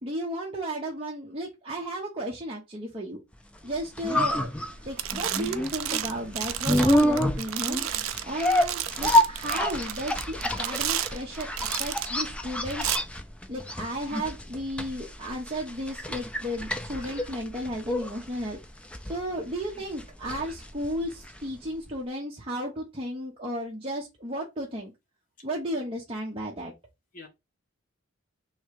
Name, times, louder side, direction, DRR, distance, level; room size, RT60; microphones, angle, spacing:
voice 1, 0.0-3.2 3.6-4.5 4.8-7.9 8.2-13.0 13.5-18.6 19.0-24.9 25.4-26.7, right 1 dB, 25° right, 0.9 m, -34 dB
sound 1, 3.6-21.6 21.9-22.0, left 1 dB, 5° left, 0.4 m, -28 dB
sound 2, 4.5-4.7 5.0-12.2 12.7-13.0, right 12 dB, 85° right, 0.5 m, -32 dB
voice 2, 16.9-17.3 25.7-25.8 27.1-27.3, left 3 dB, 40° left, 1.3 m, -47 dB
3.3 x 3.2 x 4.6 m
head